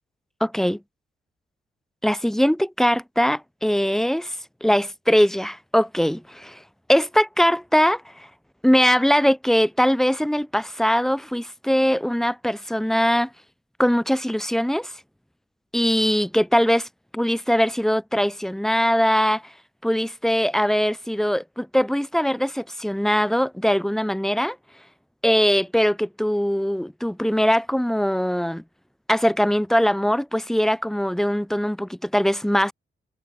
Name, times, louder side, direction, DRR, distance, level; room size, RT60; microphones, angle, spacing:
voice 1, 0.4-0.8 2.0-6.6 6.9-8.3 8.6-13.3 13.8-14.9 15.7-16.9 17.1-19.5 19.8-24.6 25.2-28.6 29.1-32.7, equal, ahead, 3.2 m, -21 dB
wide cardioid pair, 145°, 19 cm